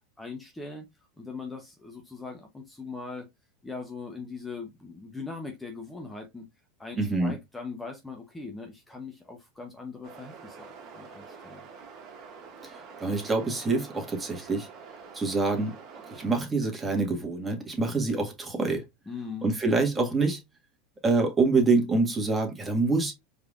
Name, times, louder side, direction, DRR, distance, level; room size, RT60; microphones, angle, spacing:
voice 1, 0.2-0.9 1.2-3.3 3.6-6.4 6.8-11.6 19.1-19.5, left 4 dB, 10° left, 0.9 m, -40 dB
voice 2, 7.0-7.4 12.6-14.7 15.1-15.7 16.1-18.8 19.4-20.4 21.0-23.1, right 3 dB, 15° right, 1.7 m, -26 dB
sound 1, 10.0-16.4, right 5 dB, 45° right, 1.6 m, -46 dB
4.7 x 3.4 x 2.4 m
hypercardioid pair, 95°, 0 cm